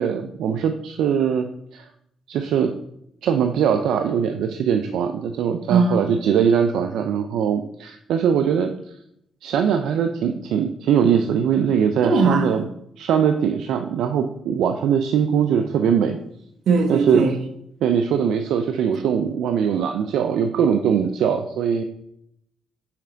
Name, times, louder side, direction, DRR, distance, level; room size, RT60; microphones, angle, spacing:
voice 1, 0.0-1.5 1.7-1.8 2.3-2.7 3.2-8.7 9.4-12.6 13.0-16.2 16.9-17.3 17.8-21.8, right 7 dB, 80° right, 7 dB, 0.4 m, -21 dB
voice 2, 5.7-6.0 12.0-12.5 16.7-17.4, right 4 dB, 65° right, 5 dB, 1.1 m, -19 dB
5.8 x 4.4 x 5.0 m, 0.76 s
cardioid pair, 90°, 0 cm